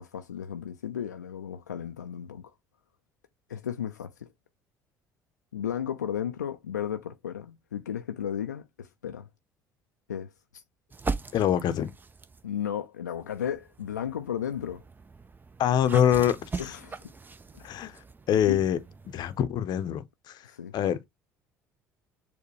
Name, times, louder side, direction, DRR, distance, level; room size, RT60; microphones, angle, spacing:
voice 1, 0.0-2.5 3.5-4.3 5.5-9.3 10.1-10.3 12.4-14.8 16.6-17.0 17.5-17.7 18.5-18.6 20.4-20.7, left 9 dB, 85° left, 0.4 m, -34 dB
sound 1, 10.9-12.5 13.2-19.4, right 4 dB, 20° right, 0.6 m, -40 dB
voice 2, 11.3-11.9 15.6-16.7 17.6-18.0 18.3-18.8 19.1-20.4 20.7-21.0, left 10 dB, 50° left, 0.7 m, -25 dB
6.6 x 2.2 x 3.2 m
figure-of-eight pair, 60°, 9 cm